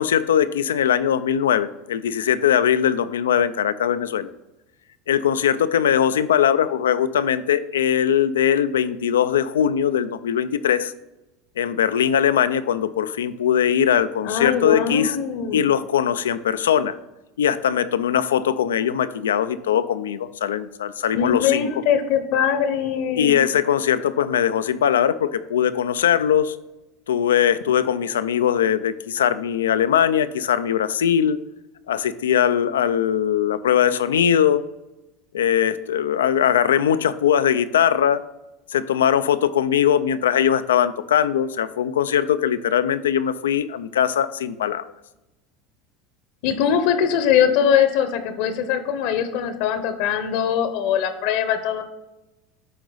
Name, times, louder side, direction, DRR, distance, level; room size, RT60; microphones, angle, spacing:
voice 1, 0.0-4.3 5.1-10.9 11.6-15.2 15.5-17.0 17.4-21.7 23.1-26.6 27.1-31.4 31.9-34.6 35.3-38.2 38.7-44.8, left 9 dB, 90° left, 12 dB, 0.4 m, -20 dB
voice 2, 14.2-15.6 21.1-23.3 46.4-51.8, left 8 dB, 70° left, 8 dB, 0.9 m, -21 dB
9.4 x 3.9 x 4.0 m, 0.99 s
hypercardioid pair, 90°, 0 cm